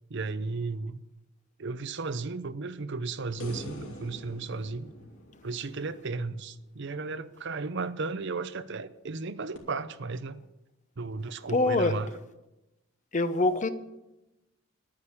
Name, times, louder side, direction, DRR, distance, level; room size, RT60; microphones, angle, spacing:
voice 1, 0.1-1.0 1.6-4.9 5.4-10.4 11.0-12.1, right 3 dB, 60° right, 0.7 m, -34 dB
sound 1, 3.4-6.7 9.5-9.6, equal, 90° left, 2.8 m, -45 dB
voice 2, 11.5-11.9 13.1-13.7, left 2 dB, 35° left, 0.8 m, -24 dB
10.5 x 9.7 x 8.4 m
head